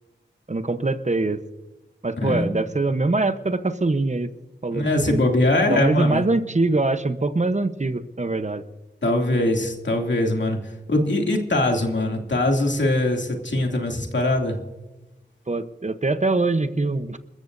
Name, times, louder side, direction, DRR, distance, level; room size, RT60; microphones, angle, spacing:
voice 1, 0.5-1.4 2.0-4.3 4.6-5.3 5.7-8.6 15.5-17.2, right 2 dB, 40° right, 10 dB, 0.9 m, -23 dB
voice 2, 2.2-2.5 4.7-6.3 9.0-10.6 10.9-14.6, left 1 dB, 80° left, 2 dB, 2.6 m, -22 dB
28.5 x 14.0 x 2.7 m, 1.1 s
wide cardioid pair, 70°, 19 cm